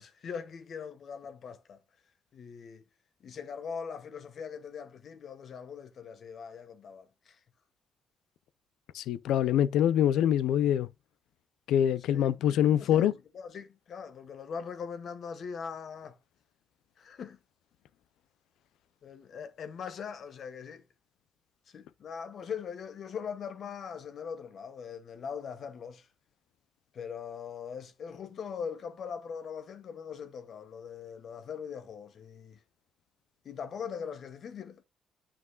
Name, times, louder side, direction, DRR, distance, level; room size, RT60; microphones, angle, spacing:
voice 1, 0.0-1.8 2.3-2.8 3.2-7.4 12.1-16.2 17.0-17.4 19.0-20.8 21.7-26.1 26.9-32.6 33.4-34.8, left 6 dB, 60° left, 1.2 m, -41 dB
voice 2, 8.9-10.9 11.7-13.1, left 10 dB, 85° left, 0.5 m, -25 dB
9.5 x 6.0 x 2.4 m
cardioid pair, 90°, 0 cm